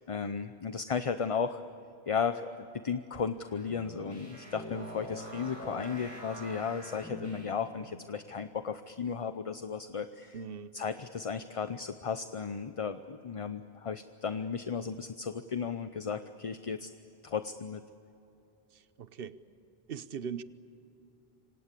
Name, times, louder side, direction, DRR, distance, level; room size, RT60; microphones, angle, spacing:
voice 1, 0.1-1.6 2.1-2.5 2.8-10.4 10.7-16.9 17.2-17.8, left 6 dB, 35° left, 10 dB, 0.7 m, -35 dB
sound 1, 3.3-7.8, equal, 15° left, 6.1 m, -44 dB
voice 2, 10.3-10.8 18.7-19.4 19.9-20.4, right 7 dB, 65° right, 14 dB, 1.1 m, -40 dB
27.0 x 25.0 x 8.3 m, 2.9 s
omnidirectional pair, 1.0 m